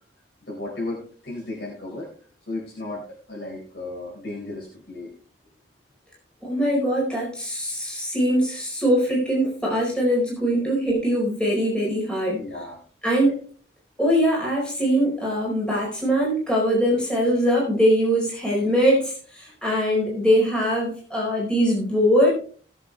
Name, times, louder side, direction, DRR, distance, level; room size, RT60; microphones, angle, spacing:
voice 1, 0.4-2.1 2.5-3.0 3.3-5.1 12.3-12.8, left 2 dB, 65° left, -4 dB, 4.9 m, -34 dB
voice 2, 6.4-12.4 13.0-13.3 14.0-22.3, equal, 5° left, -5 dB, 4.7 m, -22 dB
19.5 x 7.4 x 3.4 m, 0.42 s
head